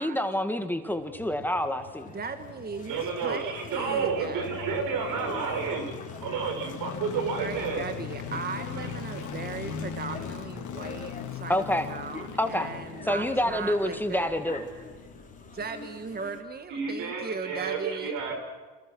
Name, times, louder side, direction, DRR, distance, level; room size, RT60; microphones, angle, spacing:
voice 1, 0.0-2.1 11.5-11.9 12.4-12.7 13.1-14.7, left 1 dB, 5° left, 7 dB, 1.9 m, -27 dB
sound 1, 0.9-16.1 16.4-16.5, left 7 dB, 65° left, 3.7 m, -40 dB
sound 2, 1.8-16.4, left 4 dB, 25° left, 3.7 m, -46 dB
voice 2, 2.1-4.5 7.4-14.3 15.5-18.1, right 5 dB, 30° right, 8 dB, 1.6 m, -38 dB
voice 3, 2.8-7.8 8.8-8.9 9.2-9.3 16.7-18.3, right 5 dB, 75° right, 5 dB, 6.4 m, -31 dB
29.0 x 27.5 x 6.2 m, 1.3 s
cardioid pair, 95°, 33 cm